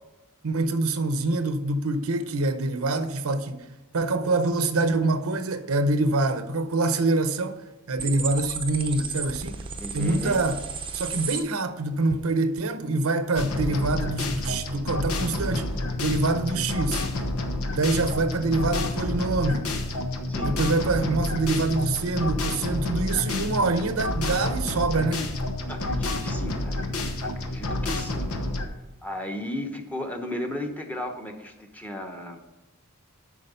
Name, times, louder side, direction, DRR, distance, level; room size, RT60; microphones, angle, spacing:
voice 1, 0.4-3.7 3.9-7.6 7.9-9.6 9.9-10.6 10.9-15.7 16.0-17.0 17.7-19.7 20.4-25.3, right 2 dB, 80° right, 0.8 m, -25 dB
sound 1, 8.0-11.4, right 5 dB, 25° right, 0.7 m, -34 dB
voice 2, 9.7-10.4 20.3-20.5 21.0-21.1 25.7-26.8 27.2-28.3 29.0-32.4, left 1 dB, 10° left, 1.0 m, -35 dB
sound 2, 13.4-28.7, left 2 dB, 90° left, 1.0 m, -29 dB
8.6 x 6.0 x 5.4 m
head